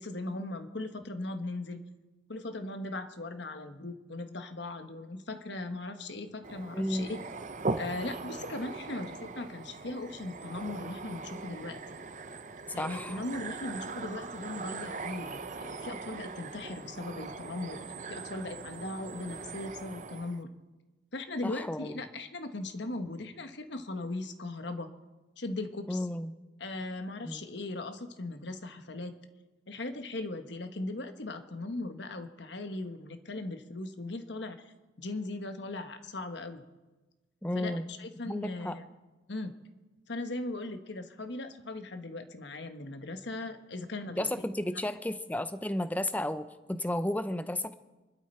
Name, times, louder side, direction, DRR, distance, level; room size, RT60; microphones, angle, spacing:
voice 1, 0.0-1.8 2.3-7.1 7.8-11.8 12.7-17.8 18.1-20.5 21.1-24.9 25.4-26.0 26.6-29.1 29.7-34.7 35.0-36.6 37.5-38.8 39.3-39.6 40.1-44.3, left 2 dB, 65° left, 8 dB, 1.2 m, -38 dB
sound 1, 6.4-20.4, right 3 dB, 40° right, 0.7 m, -40 dB
voice 2, 6.7-7.1 12.8-13.2 21.4-22.0 25.9-26.3 27.2-27.4 37.4-37.8 38.2-38.8 44.2-47.7, left 1 dB, 10° left, 12 dB, 0.6 m, -33 dB
26.0 x 12.0 x 4.4 m, 1.2 s
head